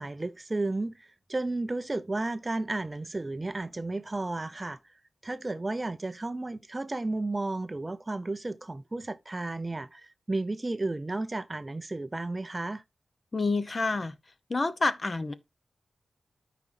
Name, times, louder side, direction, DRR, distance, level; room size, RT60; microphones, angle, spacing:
voice 1, 0.0-4.8 5.2-12.8, right 2 dB, 20° right, 0.4 m, -33 dB
voice 2, 13.3-14.1 14.5-15.3, left 3 dB, 35° left, 0.7 m, -28 dB
13.5 x 5.0 x 2.6 m
wide cardioid pair, 155°, 0 cm